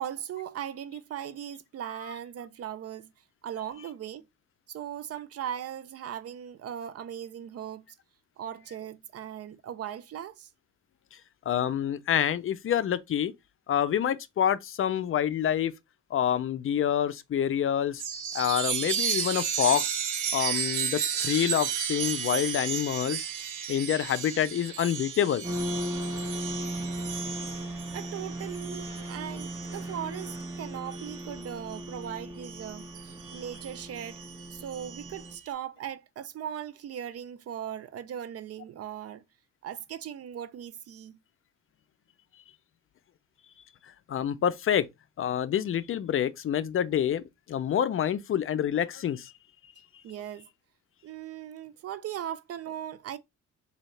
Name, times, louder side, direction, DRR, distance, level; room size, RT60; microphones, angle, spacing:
voice 1, 0.0-3.1 3.4-4.3 4.7-7.8 8.4-10.5 27.6-34.2 34.5-39.2 39.6-41.2 50.0-50.5 51.0-53.2, right 10 dB, 55° right, 0.5 m, -38 dB
voice 2, 11.5-13.3 13.7-15.7 16.1-18.0 18.3-20.0 20.3-23.2 23.7-25.4 44.1-44.9 45.2-49.3, left 9 dB, 45° left, 0.5 m, -27 dB
Chime, 18.0-32.0 32.4-35.3, right 7 dB, 80° right, 1.0 m, -34 dB
sound 1, 25.4-35.4, equal, 10° right, 0.9 m, -37 dB
3.9 x 2.7 x 3.2 m
cardioid pair, 90°, 30 cm